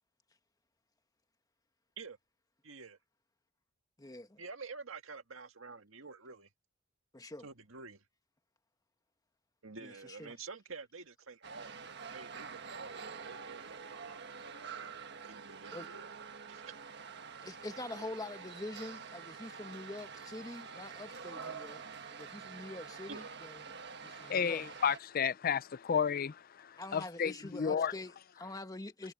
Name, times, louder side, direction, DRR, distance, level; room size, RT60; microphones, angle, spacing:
voice 1, 2.6-3.0 4.4-6.5 7.4-8.0 9.6-14.4 15.2-16.1 16.5-16.8 23.1-23.3, right 4 dB, 85° right, 1.8 m, -49 dB
voice 2, 4.0-4.4 7.1-7.5 9.8-10.4 15.7-15.9 17.4-21.8 22.1-23.6 24.0-24.6 26.8-29.1, left 2 dB, 20° left, 1.5 m, -45 dB
sound 1, 11.4-25.0, right 6 dB, 60° right, 1.5 m, -47 dB
voice 3, 24.0-27.9, left 7 dB, 45° left, 0.5 m, -32 dB
head